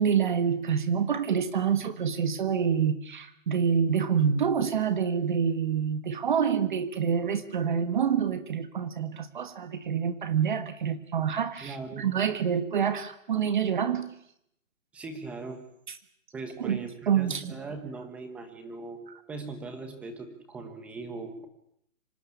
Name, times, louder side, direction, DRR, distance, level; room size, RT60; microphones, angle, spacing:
voice 1, 0.0-14.1 15.9-16.0 16.6-17.6, right 7 dB, 40° right, 12 dB, 1.5 m, -27 dB
voice 2, 11.6-12.1 14.9-15.6 16.3-19.0 19.3-21.5, right 3 dB, 5° right, 7 dB, 1.0 m, -39 dB
25.5 x 19.0 x 9.7 m, 0.71 s
hypercardioid pair, 170°, 39 cm